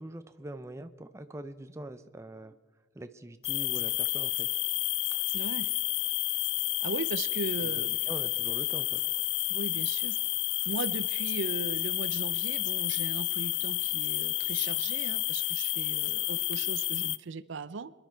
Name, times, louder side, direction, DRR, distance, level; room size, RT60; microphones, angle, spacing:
voice 1, 0.0-2.6 2.9-4.5 7.6-9.1, right 1 dB, 15° right, 10 dB, 0.5 m, -43 dB
sound 1, 3.4-17.2, left 18 dB, 70° left, 0.3 m, -30 dB
voice 2, 5.3-5.7 6.8-8.0 9.5-10.2 10.7-17.9, right 4 dB, 85° right, 16 dB, 0.5 m, -38 dB
25.5 x 11.0 x 4.5 m, 1.4 s
head